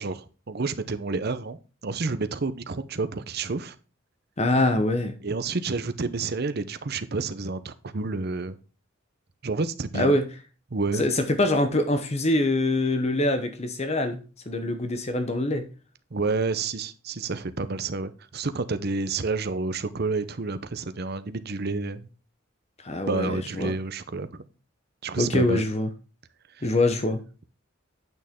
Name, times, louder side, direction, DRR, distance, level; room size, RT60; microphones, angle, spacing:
voice 1, 0.0-1.6 1.8-3.7 5.2-8.6 9.4-10.2 10.7-11.0 16.1-22.1 23.1-24.5 25.0-25.6, right 3 dB, 50° right, 13 dB, 0.7 m, -29 dB
voice 2, 4.4-5.1 9.9-10.3 11.0-14.2 14.5-15.7 22.8-23.7 25.2-25.9 26.6-27.2, left 2 dB, 35° left, 8 dB, 0.9 m, -24 dB
9.1 x 6.2 x 3.6 m, 0.35 s
head